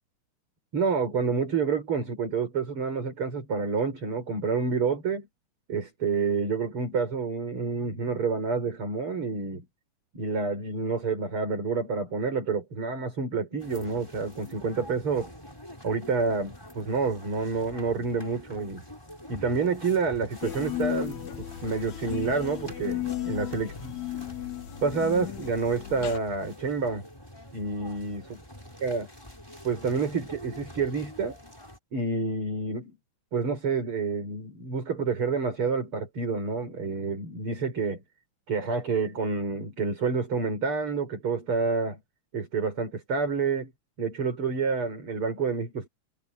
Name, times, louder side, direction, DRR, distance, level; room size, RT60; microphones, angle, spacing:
voice 1, 0.7-5.3 5.7-9.6 10.1-15.3 15.8-18.8 19.3-23.9 24.8-27.1 27.5-28.4 28.8-29.1 29.6-31.4 31.9-33.0 33.3-38.0 38.5-42.0 42.3-43.7 44.0-45.9, right 4 dB, 35° right, 5.8 m, -28 dB
sound 1, 13.6-31.8, equal, 5° left, 6.3 m, -46 dB
sound 2, 20.4-26.2, left 14 dB, 60° left, 2.0 m, -35 dB
omnidirectional pair, 4.5 m